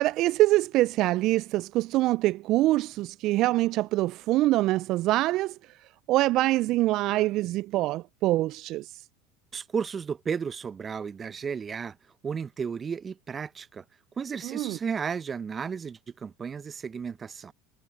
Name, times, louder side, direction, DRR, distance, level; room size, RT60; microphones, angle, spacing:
voice 1, 0.0-5.6 6.1-9.0 14.4-14.8, right 17 dB, 55° right, 0.4 m, -24 dB
voice 2, 9.5-12.0 12.2-13.8 14.2-17.5, right 6 dB, 30° right, 1.0 m, -33 dB
hypercardioid pair, 80°, 0 cm